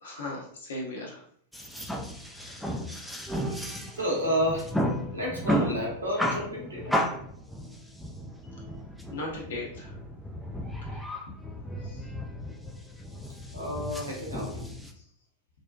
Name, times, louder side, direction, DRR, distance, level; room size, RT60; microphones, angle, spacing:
voice 1, 0.0-1.2 2.3-2.7 9.1-10.0 10.8-11.0 11.8-12.0 13.6-13.7 14.9-15.0, left 2 dB, 60° left, -2 dB, 0.6 m, -38 dB
sound 1, 1.5-14.9, equal, ahead, 0.3 m, -33 dB
voice 2, 3.9-4.7 5.1-7.0 13.5-14.7, equal, 80° right, -2 dB, 0.7 m, -30 dB
2.6 x 2.1 x 2.3 m, 0.63 s
figure-of-eight pair, 90°, 0 cm